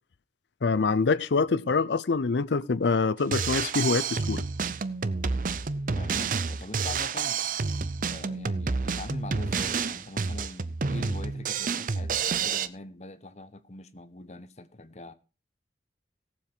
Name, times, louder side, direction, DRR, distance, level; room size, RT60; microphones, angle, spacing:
voice 1, 0.6-4.4, left 4 dB, 85° left, 0.6 m, -25 dB
Drum kit, 3.2-12.7, right 5 dB, 50° right, 0.6 m, -29 dB
voice 2, 5.9-7.4 8.0-15.1, left 2 dB, 40° left, 0.9 m, -43 dB
17.5 x 7.3 x 4.5 m
head